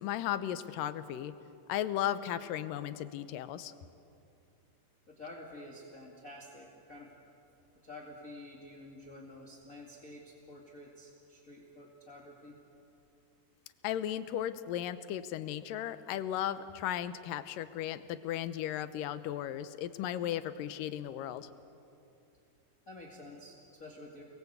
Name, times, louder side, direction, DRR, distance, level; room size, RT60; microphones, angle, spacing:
voice 1, 0.0-1.3 1.7-3.7 13.8-21.5, left 11 dB, 90° left, 12 dB, 2.5 m, -35 dB
voice 2, 5.1-7.1 7.8-12.6 22.9-24.2, left 1 dB, 25° left, -3 dB, 2.4 m, -49 dB
29.5 x 21.0 x 8.1 m, 2.6 s
omnidirectional pair, 3.8 m